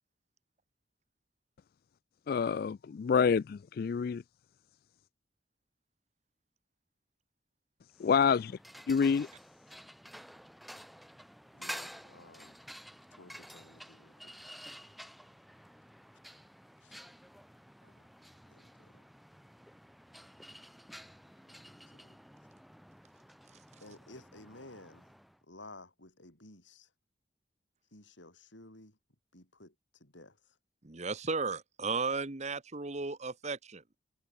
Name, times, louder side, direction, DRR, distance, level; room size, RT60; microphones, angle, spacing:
voice 1, 2.3-4.2 8.0-8.6 8.9-9.3, left 6 dB, 55° left, 0.3 m, -27 dB
sound 1, 8.0-25.4, equal, ahead, 1.3 m, -51 dB
voice 2, 11.5-12.6 13.2-14.3 16.8-16.9 17.8-18.0 18.4-19.1 21.5-21.6 21.9-22.2 23.8-25.1 25.5-26.9 27.9-29.0 29.3-30.6, left 2 dB, 85° left, 6.7 m, -54 dB
voice 3, 30.8-34.0, right 4 dB, 40° right, 1.2 m, -35 dB
head